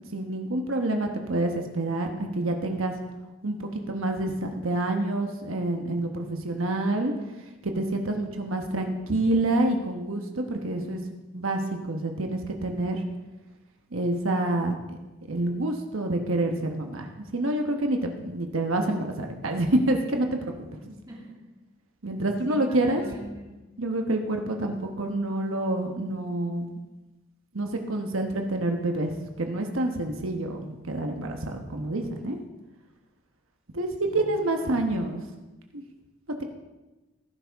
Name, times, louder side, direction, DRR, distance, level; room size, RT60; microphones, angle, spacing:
voice 1, 0.0-3.0 3.4-7.1 7.6-11.0 11.3-13.0 13.9-14.7 15.3-20.4 20.7-20.9 22.0-23.0 23.8-26.8 27.5-32.4 33.7-35.2 35.7-35.8, right 1 dB, 90° right, 3 dB, 1.2 m, -27 dB
voice 2, 21.1-21.4 22.5-23.6 34.0-34.2 34.5-35.0, right 1 dB, 20° right, -2 dB, 2.3 m, -43 dB
16.5 x 10.5 x 3.6 m, 1.1 s
head